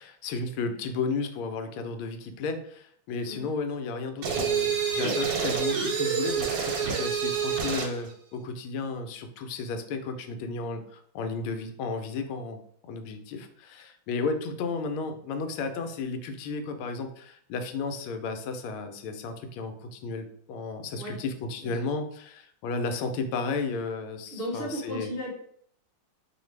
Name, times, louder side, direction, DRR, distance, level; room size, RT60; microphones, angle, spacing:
voice 1, 0.0-12.6 12.9-25.1, left 4 dB, 85° left, 7 dB, 1.4 m, -33 dB
sound 1, 4.2-8.0, right 6 dB, 60° right, 0.9 m, -27 dB
voice 2, 24.3-25.3, equal, 80° right, -4 dB, 0.5 m, -35 dB
4.8 x 2.5 x 3.1 m, 0.63 s
omnidirectional pair, 2.3 m